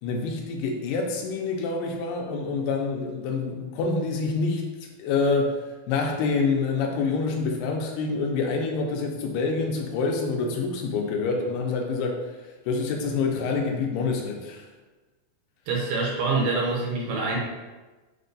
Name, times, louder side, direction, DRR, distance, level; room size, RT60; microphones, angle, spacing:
voice 1, 0.0-4.6 5.0-5.6 5.9-12.2 12.7-14.6, left 4 dB, 80° left, 1 dB, 2.2 m, -26 dB
voice 2, 15.7-17.4, right 3 dB, 80° right, -2 dB, 2.1 m, -25 dB
6.5 x 2.2 x 2.6 m, 1.2 s
omnidirectional pair, 4.1 m